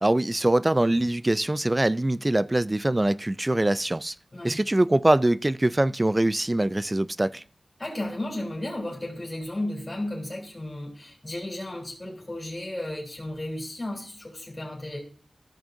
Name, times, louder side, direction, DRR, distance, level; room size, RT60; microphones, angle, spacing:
voice 1, 0.0-4.2 4.4-7.4, right 1 dB, 25° right, 0.3 m, -23 dB
voice 2, 7.8-15.0, left 1 dB, 30° left, 3.2 m, -34 dB
14.0 x 6.1 x 2.6 m
cardioid pair, 45°, 0 cm